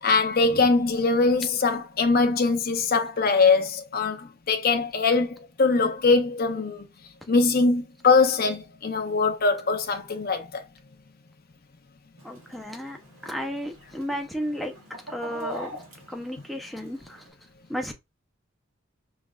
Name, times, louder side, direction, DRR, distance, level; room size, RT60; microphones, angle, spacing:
voice 1, 0.0-6.9 7.3-10.6, left 4 dB, 45° left, 0.6 m, -22 dB
voice 2, 12.2-13.0 13.2-14.7 15.1-15.7 16.1-17.2 17.7-17.9, equal, ahead, 0.6 m, -33 dB
Chicken rooster, 12.2-17.3, right 1 dB, 75° right, 2.3 m, -43 dB
5.1 x 3.2 x 2.4 m
head